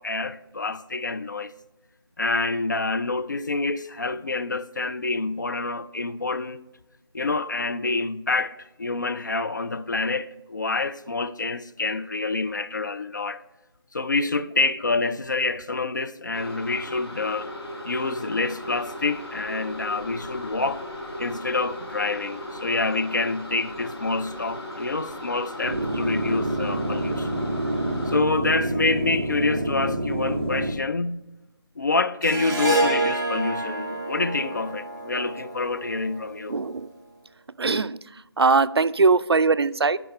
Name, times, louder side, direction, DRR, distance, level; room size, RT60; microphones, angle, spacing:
voice 1, 0.0-1.5 2.2-6.6 7.1-13.4 13.9-17.5 17.8-20.8 21.2-27.4 28.0-31.2 31.8-36.6, left 3 dB, 45° left, 0.4 m, -27 dB
sound 1, 16.3-28.2, left 1 dB, 75° left, 2.3 m, -37 dB
sound 2, 25.6-30.7, right 1 dB, 30° right, 0.7 m, -27 dB
Harp, 32.2-36.7, right 1 dB, 45° right, 1.7 m, -28 dB
voice 2, 36.5-36.9 37.6-38.0 38.4-40.0, right 4 dB, 75° right, 0.4 m, -20 dB
10.5 x 4.5 x 5.3 m
figure-of-eight pair, 165°, 14 cm